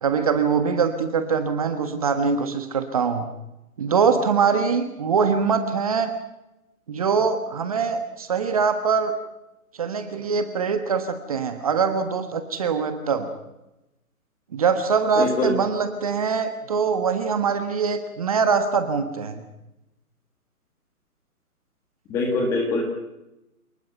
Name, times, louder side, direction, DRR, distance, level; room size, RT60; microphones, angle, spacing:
voice 1, 0.0-3.3 3.8-6.1 6.9-9.1 9.8-13.3 14.5-19.4, right 5 dB, 25° right, 8 dB, 1.4 m, -23 dB
voice 2, 15.2-15.5 22.1-22.8, left 2 dB, 5° left, 2 dB, 1.4 m, -23 dB
28.0 x 19.5 x 5.7 m, 0.93 s
hypercardioid pair, 165°, 45 cm